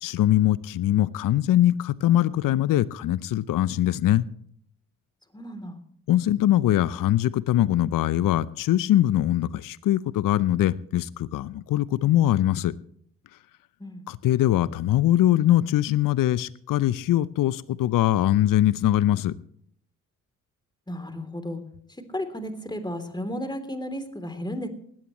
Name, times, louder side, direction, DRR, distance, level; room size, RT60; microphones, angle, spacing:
voice 1, 0.0-4.3 6.1-12.7 14.1-19.3, left 13 dB, 55° left, 19 dB, 0.7 m, -22 dB
voice 2, 5.3-5.8 13.8-14.0 20.9-21.6 22.1-24.7, equal, 10° left, 8 dB, 3.3 m, -33 dB
19.5 x 16.0 x 3.1 m, 0.63 s
hypercardioid pair, 45°, 40 cm